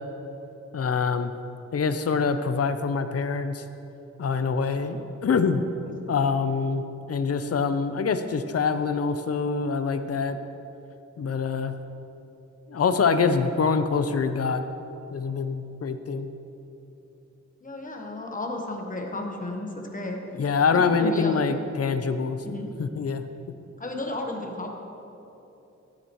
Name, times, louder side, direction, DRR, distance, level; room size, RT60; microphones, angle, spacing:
voice 1, 0.7-1.3 1.7-3.6 4.2-5.0 5.2-5.6 6.1-10.4 11.2-11.7 12.7-14.7 15.1-16.3 20.4-23.3, left 5 dB, 55° left, 9 dB, 0.6 m, -25 dB
voice 2, 17.6-20.2 20.7-21.4 22.4-22.7 23.8-24.7, left 2 dB, 30° left, 1 dB, 1.2 m, -33 dB
13.5 x 9.7 x 3.0 m, 3.0 s
wide cardioid pair, 135°, 29 cm